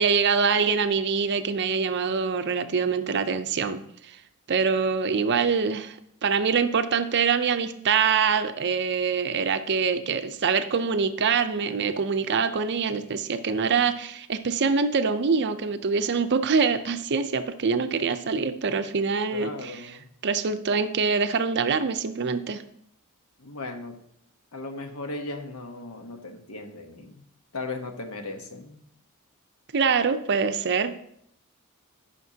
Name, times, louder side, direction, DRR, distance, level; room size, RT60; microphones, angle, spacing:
voice 1, 0.0-3.8 4.1-4.2 4.5-19.7 20.2-22.6 29.7-30.9, right 5 dB, 50° right, 10 dB, 0.6 m, -24 dB
voice 2, 19.3-20.1 23.4-24.0 24.5-27.2 27.5-28.8, left 3 dB, 80° left, 6 dB, 1.1 m, -37 dB
14.0 x 5.8 x 2.8 m, 0.71 s
head